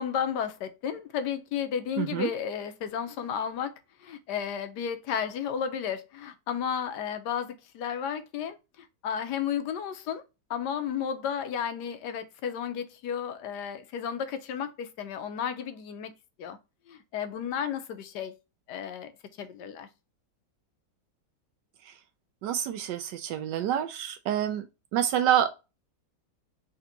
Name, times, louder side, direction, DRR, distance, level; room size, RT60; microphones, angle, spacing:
voice 1, 0.0-3.7 4.0-10.2 10.5-16.1 16.4-16.6 16.9-18.3 18.7-19.1 19.4-19.9, left 8 dB, 75° left, 1.2 m, -33 dB
voice 2, 2.0-2.3 22.4-24.6 24.9-25.5, right 10 dB, 75° right, 1.1 m, -27 dB
3.9 x 3.4 x 2.7 m
omnidirectional pair, 2.0 m